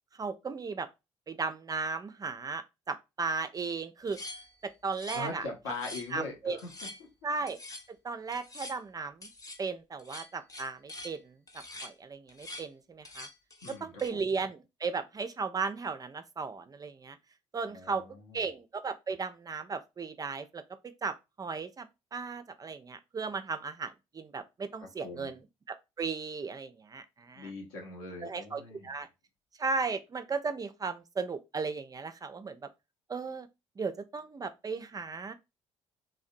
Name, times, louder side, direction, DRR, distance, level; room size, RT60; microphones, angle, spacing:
voice 1, 0.2-0.9 1.3-4.4 4.6-5.5 6.1-6.6 7.2-7.6 8.0-9.3 9.6-11.3 11.8-13.3 13.8-17.2 17.5-18.0 18.3-20.6 21.0-25.4 25.7-27.5 28.2-29.1 29.6-32.6 33.1-33.5 33.8-35.3, right 4 dB, 25° right, 0.3 m, -36 dB
sound 1, 4.1-5.4 5.7-6.2 6.6-7.0 7.5-7.9 8.3-8.8 9.2-9.6 10.0-11.2 11.5-11.9 12.3-12.7 13.0-14.1, left 1 dB, 25° left, 0.7 m, -45 dB
voice 2, 5.1-6.7 13.6-14.2 17.7-18.4 25.0-25.3 27.4-28.9, left 3 dB, 75° left, 0.8 m, -41 dB
2.7 x 2.0 x 2.5 m
figure-of-eight pair, 50°, 15 cm